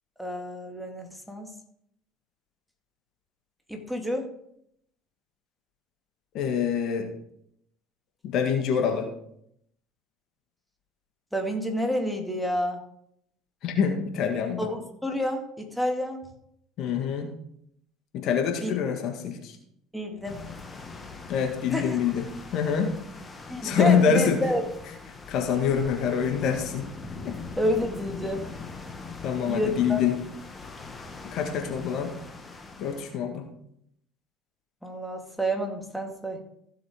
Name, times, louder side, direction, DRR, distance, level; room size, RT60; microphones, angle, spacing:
voice 1, 0.2-1.5 3.7-4.3 11.3-12.8 14.6-16.2 18.6-18.7 19.9-20.4 21.7-22.0 23.5-24.6 27.6-28.5 29.5-30.0 34.8-36.4, equal, ahead, 2 dB, 2.1 m, -29 dB
voice 2, 6.3-7.1 8.2-9.1 13.6-14.7 16.8-17.3 18.1-19.6 21.3-23.0 23.6-24.4 25.3-26.9 27.2-27.4 29.2-30.2 31.2-32.1 32.8-33.5, left 7 dB, 50° left, 4 dB, 1.7 m, -25 dB
sound 1, 20.2-33.2, left 4 dB, 20° left, 1.7 m, -42 dB
15.5 x 7.2 x 3.7 m, 0.72 s
figure-of-eight pair, 65°, 0 cm